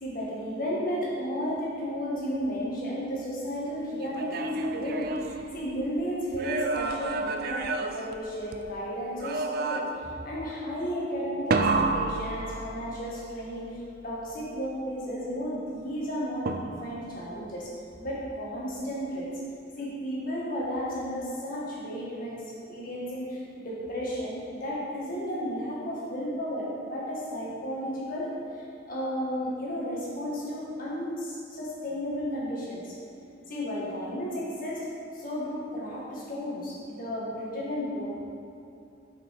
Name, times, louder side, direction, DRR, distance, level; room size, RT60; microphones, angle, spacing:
voice 1, 0.0-13.7 14.0-17.7 18.0-19.3 19.8-22.3 22.7-28.3 28.5-33.0 33.5-34.9 35.1-38.2, equal, 50° left, -6 dB, 1.8 m, -33 dB
sound 1, 4.0-5.9 6.3-8.8 9.2-10.2 11.5-13.1 16.5-17.1, right 3 dB, 55° right, 0.4 m, -30 dB
6.2 x 6.0 x 4.7 m, 2.6 s
head